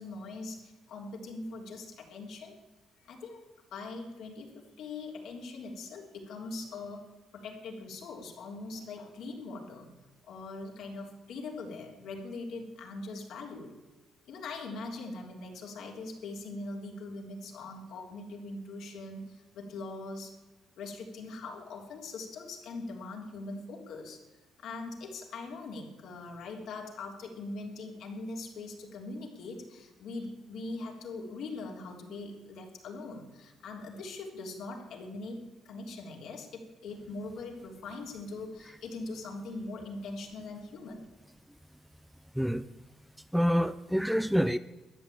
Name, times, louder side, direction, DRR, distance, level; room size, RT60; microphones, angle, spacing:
voice 1, 0.0-2.6 3.0-3.4 3.7-9.9 10.2-13.7 14.2-20.3 20.8-24.2 24.6-41.0, left 3 dB, 75° left, 1 dB, 3.3 m, -41 dB
voice 2, 42.3-42.7 43.3-44.6, equal, ahead, 13 dB, 0.5 m, -27 dB
13.0 x 9.6 x 8.6 m, 1.1 s
cardioid pair, 90°, 0 cm